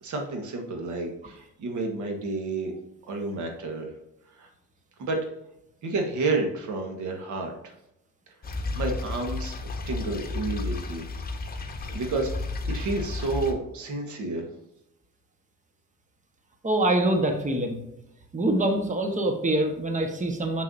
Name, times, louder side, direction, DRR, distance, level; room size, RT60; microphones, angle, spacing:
voice 1, 0.0-2.7 3.1-3.9 4.3-4.5 5.0-5.2 5.8-7.7 8.4-9.5 9.9-11.0 11.9-12.3 12.6-14.4, right 3 dB, 75° right, 3 dB, 1.6 m, -30 dB
sound 1, 8.4-13.5, left 3 dB, 30° left, 1.1 m, -32 dB
voice 2, 16.6-17.8 18.3-20.6, right 1 dB, 25° right, 4 dB, 1.3 m, -25 dB
6.6 x 6.3 x 2.7 m, 0.84 s
cardioid pair, 90°, 30 cm